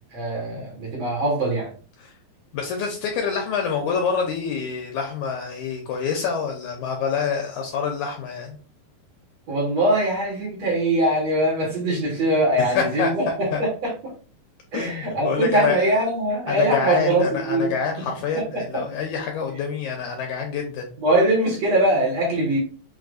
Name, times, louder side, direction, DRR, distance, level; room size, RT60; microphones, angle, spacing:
voice 1, 0.1-1.7 9.5-13.9 14.7-17.7 18.3-18.8 21.0-22.6, right 1 dB, 55° right, -2 dB, 2.2 m, -22 dB
voice 2, 2.5-8.6 11.9-12.1 12.6-13.6 14.7-15.8 16.5-20.9, left 6 dB, 80° left, 2 dB, 1.8 m, -27 dB
6.2 x 2.7 x 2.6 m, 0.38 s
omnidirectional pair, 4.0 m